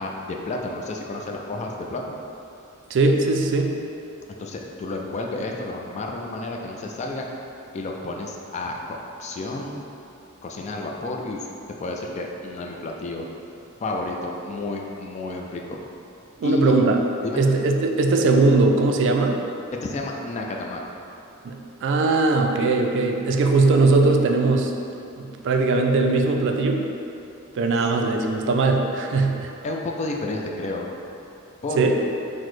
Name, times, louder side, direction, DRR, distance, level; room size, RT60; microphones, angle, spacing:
voice 1, 0.0-2.2 4.3-7.3 7.7-9.9 10.4-11.5 11.8-13.2 13.8-15.8 16.4-16.7 17.2-17.4 19.8-20.8 29.6-30.9 31.6-31.9, left 2 dB, 30° left, 0 dB, 0.3 m, -31 dB
voice 2, 2.9-3.7 16.4-17.0 17.4-19.4 21.4-24.7 25.2-26.8 27.6-29.5 31.8-31.9, right 3 dB, 60° right, 2 dB, 0.3 m, -20 dB
5.9 x 2.1 x 3.1 m, 2.7 s
head